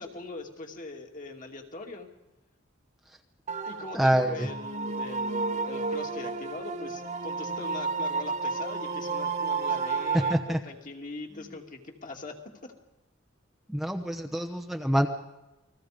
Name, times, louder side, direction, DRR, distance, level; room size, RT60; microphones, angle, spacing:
voice 1, 0.0-2.1 3.7-12.3 12.6-12.7, left 3 dB, 40° left, 2 dB, 2.8 m, -41 dB
sound 1, 3.5-10.3, right 4 dB, 40° right, 1.8 m, -31 dB
voice 2, 3.9-4.3 10.3-10.6 13.7-15.1, right 1 dB, ahead, 2 dB, 1.0 m, -26 dB
29.0 x 21.0 x 5.2 m, 0.99 s
head